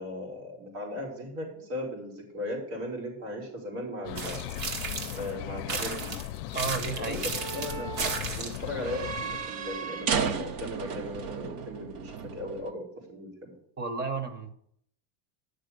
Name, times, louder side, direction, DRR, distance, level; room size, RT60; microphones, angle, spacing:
voice 1, 0.0-4.4 5.1-6.1 7.0-7.9 8.4-13.5, left 1 dB, 85° right, 0 dB, 5.4 m, -37 dB
sound 1, 4.0-9.5, left 16 dB, 90° left, 0.5 m, -38 dB
sound 2, 4.2-5.3 5.7-8.7, right 4 dB, 70° right, 2.2 m, -34 dB
sound 3, 4.4-12.7, right 6 dB, 45° right, 0.9 m, -36 dB
voice 2, 6.5-7.3 13.8-14.5, right 4 dB, 20° right, 10 dB, 0.9 m, -32 dB
10.5 x 6.6 x 6.7 m, 0.70 s
cardioid pair, 155°, 48 cm